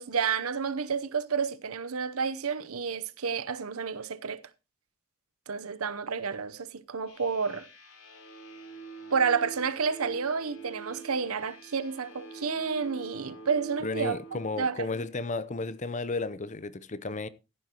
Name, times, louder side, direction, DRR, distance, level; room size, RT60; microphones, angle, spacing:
voice 1, 0.0-4.4 5.5-7.7 9.1-14.2 14.6-14.7, right 5 dB, 75° right, 0.8 m, -30 dB
sound 1, 7.1-14.5, right 4 dB, 65° left, 3.2 m, -45 dB
voice 2, 13.8-17.3, left 3 dB, 35° left, 0.6 m, -33 dB
15.5 x 9.7 x 2.9 m
head